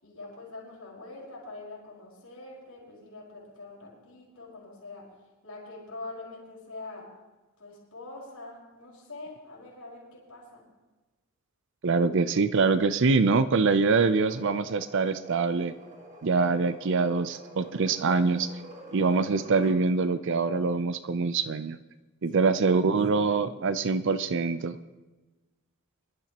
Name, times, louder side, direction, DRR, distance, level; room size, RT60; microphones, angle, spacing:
voice 1, 0.0-5.1 5.4-7.1 7.6-10.6 22.3-22.8, left 2 dB, 75° left, -4 dB, 5.1 m, -44 dB
voice 2, 11.8-15.7 16.2-18.5 18.9-21.8 22.2-24.8, right 4 dB, 60° right, 13 dB, 0.5 m, -24 dB
sound 1, 14.0-19.8, right 2 dB, 35° right, 1.9 m, -48 dB
24.5 x 12.0 x 3.0 m, 1.2 s
head